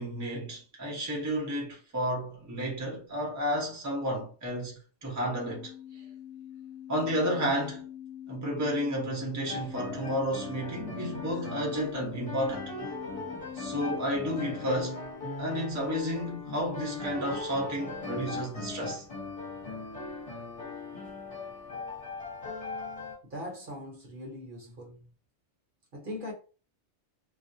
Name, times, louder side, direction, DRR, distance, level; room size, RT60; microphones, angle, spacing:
voice 1, 0.0-5.7 6.9-7.9 8.3-12.7 13.5-15.0 15.4-19.0, equal, 20° right, 0.6 m, -32 dB
sound 1, 5.0-14.6, left 10 dB, 80° left, 1.0 m, -44 dB
sound 2, 9.5-23.2, left 3 dB, 30° left, 1.1 m, -39 dB
voice 2, 23.2-25.1 25.9-26.3, left 1 dB, 55° right, 0.9 m, -40 dB
2.3 x 2.0 x 2.6 m
omnidirectional pair, 1.2 m